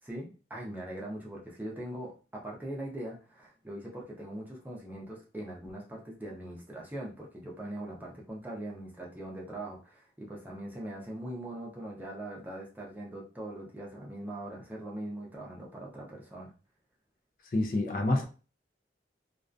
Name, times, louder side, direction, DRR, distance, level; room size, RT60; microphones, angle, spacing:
voice 1, 0.0-16.5, right 1 dB, 10° right, -3 dB, 0.5 m, -41 dB
voice 2, 17.5-18.2, left 2 dB, 50° left, 2 dB, 0.4 m, -27 dB
2.3 x 2.2 x 2.5 m, 0.35 s
head